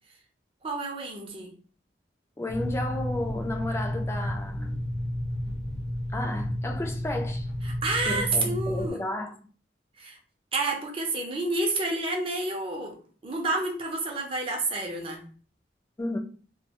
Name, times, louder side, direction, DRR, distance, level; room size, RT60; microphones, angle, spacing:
voice 1, 0.6-1.5 7.6-9.0 10.0-10.2 10.5-13.0 13.2-15.2, right 2 dB, 30° right, 0.6 m, -29 dB
voice 2, 2.4-4.8 6.1-7.5 8.1-9.4 16.0-16.2, left 1 dB, 15° left, 0.3 m, -33 dB
sound 1, 2.5-8.9, left 1 dB, 75° left, 0.8 m, -31 dB
2.3 x 2.2 x 2.8 m
head